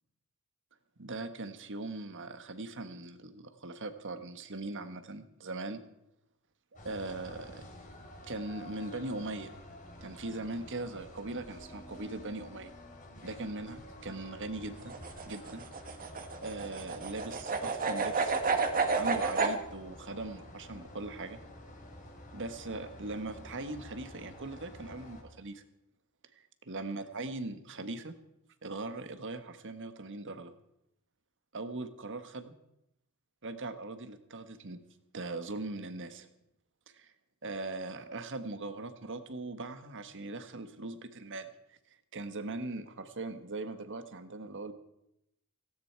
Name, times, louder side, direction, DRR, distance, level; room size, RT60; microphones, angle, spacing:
voice 1, 1.0-5.8 6.8-7.7 8.3-9.5 10.0-12.7 13.2-14.9 15.3-15.6 16.4-18.4 19.0-21.4 22.3-25.6 26.4-28.1 28.6-30.5 31.5-32.5 33.4-34.8 35.1-36.3 36.9-37.1 37.4-44.7, right 2 dB, 60° right, 9 dB, 1.5 m, -40 dB
sound 1, 6.7-25.2, left 1 dB, 35° left, 3.4 m, -50 dB
sound 2, 14.8-19.6, right 4 dB, 40° right, 1.7 m, -30 dB
17.5 x 17.0 x 4.7 m, 0.81 s
head